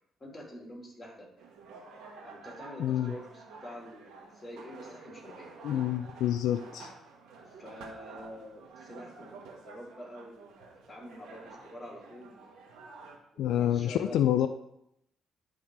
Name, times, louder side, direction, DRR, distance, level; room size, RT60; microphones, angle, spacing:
voice 1, 0.2-1.3 2.2-5.5 7.5-12.6 13.3-14.5, equal, 20° left, -1 dB, 2.8 m, -46 dB
sound 1, 1.4-13.2, right 4 dB, 90° right, 1.4 m, -50 dB
voice 2, 2.8-3.1 5.6-6.9 13.4-14.5, left 11 dB, 80° left, 9 dB, 0.4 m, -27 dB
10.5 x 3.6 x 4.7 m, 0.78 s
cardioid pair, 90°, 0 cm